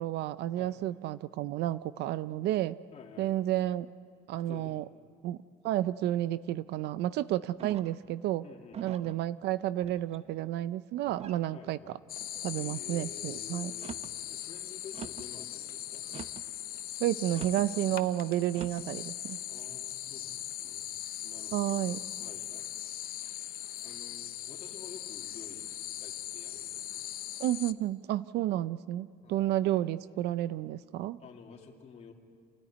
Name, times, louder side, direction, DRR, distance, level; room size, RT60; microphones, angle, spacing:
voice 1, 0.0-2.8 3.2-3.9 4.3-4.8 5.2-5.4 5.6-8.4 8.8-11.8 12.4-13.7 17.0-19.4 21.5-22.0 27.4-31.2, right 13 dB, 70° right, 16 dB, 0.5 m, -31 dB
voice 2, 2.9-3.3 4.5-4.8 8.4-8.8 11.5-12.0 12.5-16.0 19.5-21.9 22.2-23.3 23.8-25.7 25.9-27.1 29.2-29.5 31.2-32.1, left 6 dB, 40° left, 1 dB, 2.7 m, -51 dB
sound 1, 7.6-8.1 8.7-9.2 9.8-10.3 11.1-11.5 12.1-12.6 13.7-14.2 14.9-15.3 16.1-16.5 17.3-17.7 18.5-18.9, right 8 dB, 35° right, 0.7 m, -44 dB
sound 2, 12.1-27.7, left 13 dB, 55° left, 0.8 m, -40 dB
29.0 x 13.0 x 9.7 m, 2.1 s
cardioid pair, 135°, 18 cm